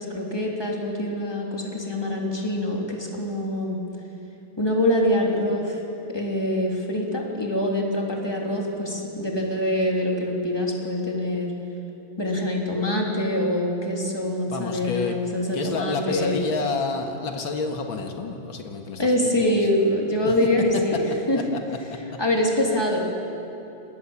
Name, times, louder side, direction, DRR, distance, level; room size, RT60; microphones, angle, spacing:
voice 1, 0.0-3.8 4.6-5.8 6.1-11.5 12.2-16.4 19.0-21.4 22.2-23.1, left 1 dB, 10° left, -1 dB, 3.3 m, -24 dB
voice 2, 14.5-15.2 15.5-19.4 20.2-20.3 22.1-22.2, left 4 dB, 90° left, 3 dB, 2.5 m, -29 dB
29.0 x 19.5 x 7.3 m, 2.8 s
omnidirectional pair, 2.1 m